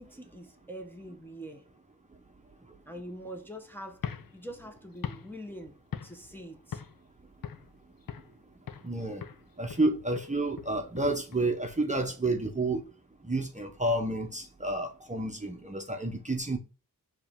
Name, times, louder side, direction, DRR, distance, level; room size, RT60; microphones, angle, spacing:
voice 1, 0.0-1.6 2.9-4.0 4.3-6.8, equal, 5° left, 0.9 m, -44 dB
sound 1, 3.9-6.4 6.7-7.1 7.4-8.4 8.7-9.0 9.2-12.3, left 8 dB, 65° left, 0.6 m, -42 dB
voice 2, 8.8-9.2 9.6-12.8 13.3-16.6, right 2 dB, 20° right, 0.8 m, -30 dB
4.7 x 3.0 x 3.6 m
cardioid pair, 45°, 37 cm